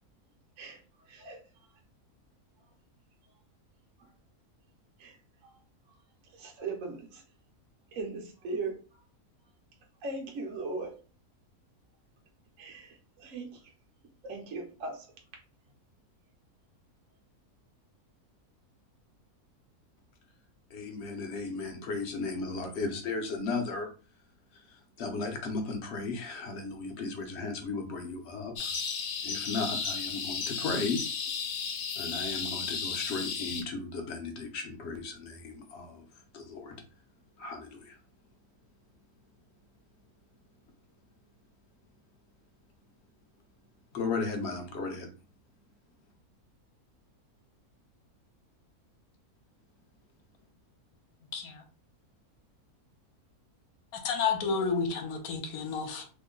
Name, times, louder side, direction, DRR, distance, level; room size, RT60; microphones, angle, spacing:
voice 1, 1.1-1.4 5.0-5.2 6.3-7.2 7.9-9.0 10.0-11.0 12.6-13.6 14.2-15.1, right 3 dB, 65° right, 1 dB, 1.0 m, -38 dB
voice 2, 20.7-23.9 25.0-28.7 29.2-31.1 32.0-36.0 36.3-36.8 37.4-38.0 43.9-45.1, left 3 dB, 60° left, 4 dB, 0.8 m, -35 dB
sound 1, 28.6-33.6, left 5 dB, 90° left, 0.4 m, -34 dB
voice 3, 51.3-51.6 53.9-56.0, left 5 dB, 75° left, 5 dB, 1.1 m, -31 dB
2.9 x 2.1 x 3.7 m, 0.36 s
omnidirectional pair, 1.6 m